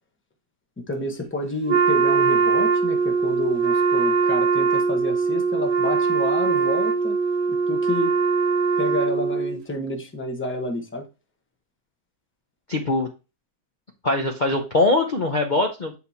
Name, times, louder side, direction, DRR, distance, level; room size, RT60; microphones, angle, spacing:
voice 1, 0.8-7.2 7.5-8.1 8.8-11.1, left 2 dB, 10° left, 0.7 m, -29 dB
Wind instrument woodwind instrument, 1.7-9.6, right 5 dB, 55° right, 0.5 m, -21 dB
voice 2, 12.7-13.1 14.0-16.0, left 2 dB, 45° left, 0.6 m, -22 dB
8.4 x 4.4 x 2.7 m
omnidirectional pair, 1.7 m